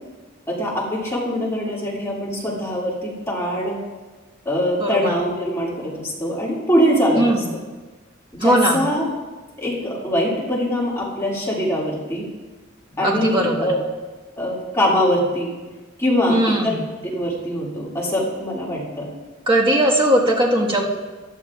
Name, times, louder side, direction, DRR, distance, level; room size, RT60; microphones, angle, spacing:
voice 1, 0.5-3.8 4.5-7.4 8.3-9.1 9.6-12.2 13.0-13.8 14.4-15.5 16.0-16.8 17.0-19.1, equal, 15° left, -5 dB, 2.3 m, -23 dB
voice 2, 4.8-5.1 7.2-7.4 8.4-8.8 13.0-13.7 16.3-16.8 19.5-20.8, right 1 dB, 25° right, -2 dB, 1.5 m, -19 dB
15.0 x 11.0 x 2.4 m, 1.3 s
head